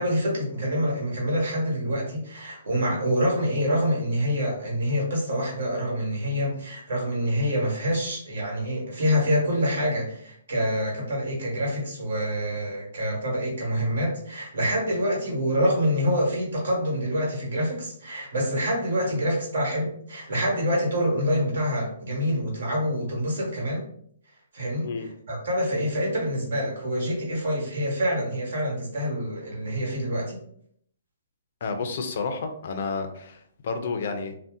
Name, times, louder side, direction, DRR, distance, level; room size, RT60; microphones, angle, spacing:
voice 1, 0.0-23.8 24.5-30.4, equal, 60° right, -1 dB, 1.4 m, -26 dB
voice 2, 31.6-34.4, left 4 dB, 45° left, 6 dB, 0.4 m, -31 dB
2.6 x 2.1 x 3.6 m, 0.65 s
hypercardioid pair, 175°, 0 cm